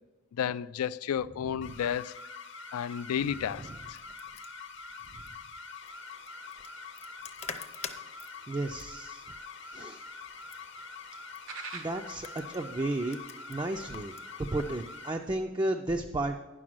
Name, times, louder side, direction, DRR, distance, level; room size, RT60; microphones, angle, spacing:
voice 1, 0.3-2.2 2.7-4.0, left 8 dB, 90° left, 0.3 m, -32 dB
sound 1, 1.6-15.1, left 4 dB, 55° left, 0.8 m, -45 dB
voice 2, 3.4-3.8 5.1-5.2 8.5-9.2 9.7-10.0 11.7-16.4, right 2 dB, 20° right, 0.3 m, -33 dB
sound 2, 3.7-14.8, left 6 dB, 30° left, 0.6 m, -48 dB
sound 3, 5.8-15.3, right 5 dB, 80° right, 0.9 m, -53 dB
9.8 x 6.2 x 6.0 m
head